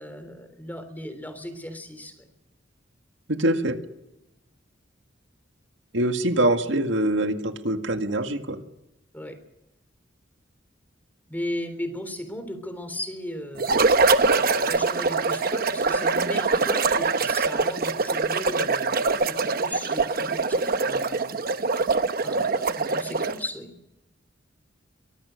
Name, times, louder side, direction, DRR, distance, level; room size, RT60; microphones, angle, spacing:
voice 1, 0.0-2.3 9.1-9.4 11.3-21.5 22.2-23.7, left 1 dB, 10° left, 9 dB, 3.4 m, -36 dB
voice 2, 3.3-3.8 5.9-8.6, right 1 dB, 80° right, 7 dB, 1.9 m, -24 dB
sound 1, 13.6-23.5, right 4 dB, 50° right, 1.0 m, -23 dB
24.0 x 18.5 x 6.5 m, 0.90 s
head